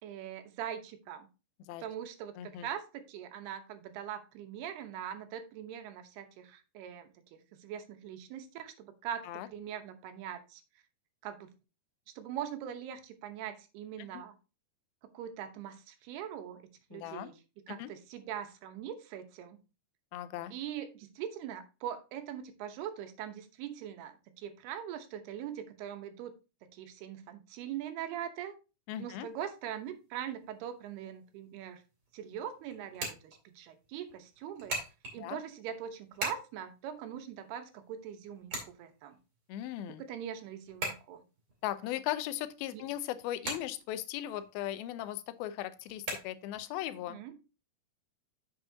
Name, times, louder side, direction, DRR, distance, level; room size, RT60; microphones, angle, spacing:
voice 1, 0.0-1.3 1.8-10.6 11.2-11.6 12.2-14.4 15.1-17.4 17.7-19.6 20.5-26.3 26.7-28.5 29.0-31.8 32.1-34.8 35.1-39.2 40.0-41.2 42.7-42.9 47.1-47.4, right 9 dB, 80° right, 7 dB, 3.0 m, -42 dB
voice 2, 2.4-2.7 9.3-9.5 14.0-14.2 16.9-17.3 17.8-17.9 20.1-20.5 28.9-29.3 35.2-35.4 39.5-40.0 41.6-47.2, left 13 dB, 80° left, 12 dB, 2.4 m, -38 dB
sound 1, 29.3-46.8, right 2 dB, 35° right, 3.6 m, -45 dB
9.0 x 6.9 x 2.7 m, 0.29 s
omnidirectional pair, 4.6 m